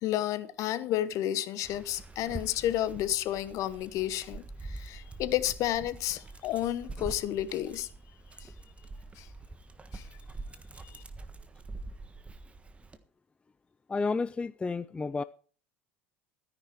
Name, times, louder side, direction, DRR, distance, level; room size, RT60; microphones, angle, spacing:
voice 1, 0.0-7.9 8.4-8.5 9.2-9.3 9.9-10.0 10.8-11.0, left 13 dB, 50° left, 1.1 m, -31 dB
Dog, 1.6-13.0, right 3 dB, 20° right, 1.3 m, -45 dB
voice 2, 13.9-15.2, left 4 dB, 15° left, 0.5 m, -31 dB
13.5 x 10.0 x 4.6 m
hypercardioid pair, 75°, 7 cm